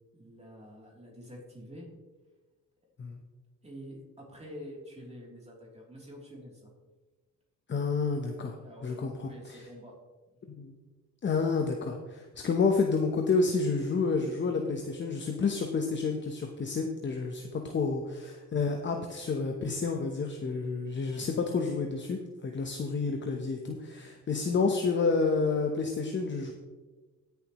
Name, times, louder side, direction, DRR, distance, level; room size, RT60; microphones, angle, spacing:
voice 1, 0.1-2.0 3.6-6.7 8.6-10.0 17.7-18.0, equal, 20° right, -2 dB, 3.2 m, -47 dB
voice 2, 7.7-8.5 8.8-9.6 10.6-10.7 11.2-26.5, left 4 dB, 40° left, 3 dB, 1.0 m, -29 dB
18.0 x 6.9 x 3.1 m, 1.3 s
cardioid pair, 90°, 30 cm